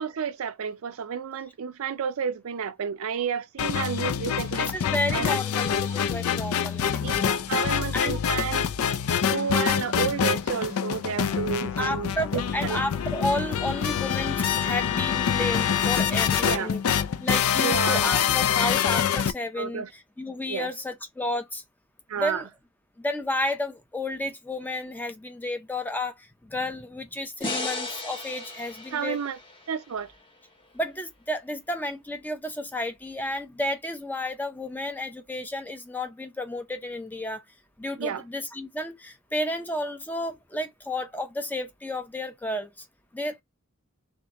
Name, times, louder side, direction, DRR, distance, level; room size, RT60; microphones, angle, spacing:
voice 1, 0.0-4.7 5.1-6.0 7.0-7.1 7.5-9.0 9.3-12.8 16.4-16.8 17.6-18.1 19.6-19.9 20.5-20.7 22.1-22.5 28.9-29.4 29.7-30.1 38.0-38.2, right 7 dB, 70° right, 0.4 m, -31 dB
sound 1, 3.6-19.3, left 8 dB, 75° left, 0.4 m, -25 dB
voice 2, 4.7-7.4 7.9-8.2 11.8-16.8 17.2-19.8 20.2-21.6 22.2-22.4 23.0-29.2 30.7-37.4 37.8-42.8 43.1-43.4, left 1 dB, 10° left, 0.5 m, -32 dB
sound 2, 27.4-30.6, left 2 dB, 25° left, 0.9 m, -36 dB
3.5 x 2.8 x 3.0 m
head